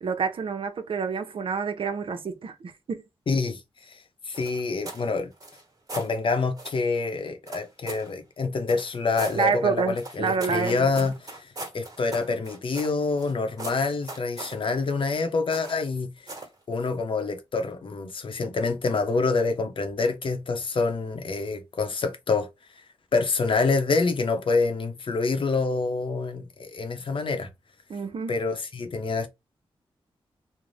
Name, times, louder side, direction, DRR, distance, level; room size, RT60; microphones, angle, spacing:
voice 1, 0.0-3.0 9.3-11.1 27.9-28.3, right 5 dB, 60° right, 0.5 m, -28 dB
voice 2, 3.3-3.6 3.9-4.0 4.3-5.3 5.9-16.1 16.7-22.5 23.1-27.5 28.3-29.3, left 4 dB, 60° left, 0.6 m, -26 dB
sound 1, 4.3-5.1 5.4-6.1 6.6-6.8 7.5-8.1 8.7-9.4 10.0-13.3 13.6-14.6 15.5-15.9 16.3-16.6, right 2 dB, 40° right, 1.0 m, -39 dB
2.5 x 2.0 x 3.1 m
cardioid pair, 60°, 10 cm